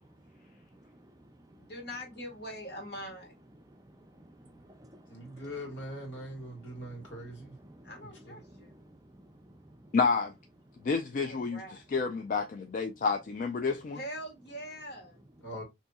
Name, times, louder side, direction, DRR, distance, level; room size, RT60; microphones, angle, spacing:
voice 1, 0.1-1.7 3.7-5.5 6.1-7.9 8.4-10.0 10.7-10.9, right 1 dB, 20° right, 0.5 m, -56 dB
voice 2, 1.6-3.3 7.8-8.8 11.2-11.8 13.9-15.2, equal, 60° left, 1.4 m, -43 dB
voice 3, 5.1-7.6 8.0-8.4 15.4-15.6, equal, 85° left, 1.6 m, -42 dB
voice 4, 9.9-10.3 10.8-11.6 11.9-14.0, left 4 dB, 45° left, 0.3 m, -29 dB
4.0 x 2.7 x 2.2 m
head